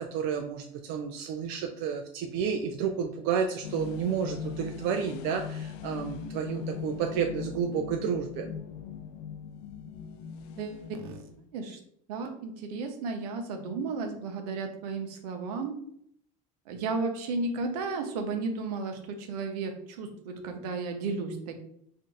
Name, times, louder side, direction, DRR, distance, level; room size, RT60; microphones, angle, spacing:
voice 1, 0.0-8.5, right 7 dB, 70° right, 3 dB, 0.5 m, -31 dB
sound 1, 3.6-11.5, left 7 dB, 80° left, 0.4 m, -40 dB
voice 2, 10.6-11.2 11.5-11.8 12.1-15.7 16.7-21.5, right 3 dB, 90° right, 5 dB, 0.9 m, -34 dB
3.6 x 2.6 x 3.9 m, 0.67 s
supercardioid pair, 115°, 20 cm